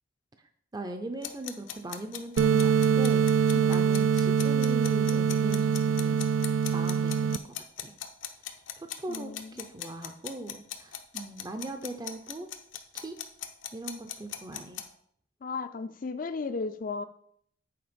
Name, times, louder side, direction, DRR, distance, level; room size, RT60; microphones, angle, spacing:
voice 1, 0.7-6.3 6.7-7.9 8.8-12.5 12.7-13.2 13.7-14.8, right 2 dB, 20° right, 7 dB, 0.5 m, -40 dB
sound 1, 1.2-14.9, left 11 dB, 85° left, 0.8 m, -39 dB
sound 2, 2.4-7.4, right 6 dB, 90° right, 0.3 m, -24 dB
voice 2, 9.1-9.6 15.4-17.0, left 4 dB, 45° left, 10 dB, 0.4 m, -35 dB
8.6 x 4.7 x 5.1 m, 0.66 s
head